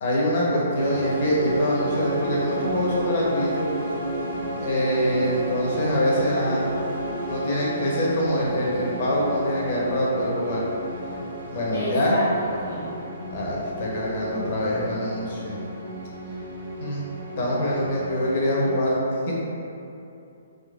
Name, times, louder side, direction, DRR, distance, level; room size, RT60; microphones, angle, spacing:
voice 1, 0.0-3.6 4.6-6.6 7.3-10.6 11.5-12.1 13.3-15.5 16.8-17.0 17.4-19.0 19.3-19.4, equal, 50° left, -5 dB, 0.9 m, -24 dB
sound 1, 0.8-18.7, right 1 dB, 60° right, 0.7 m, -32 dB
voice 2, 11.7-12.9, equal, 85° left, -13 dB, 1.3 m, -31 dB
3.8 x 3.0 x 2.4 m, 2.7 s
figure-of-eight pair, 130°, 0 cm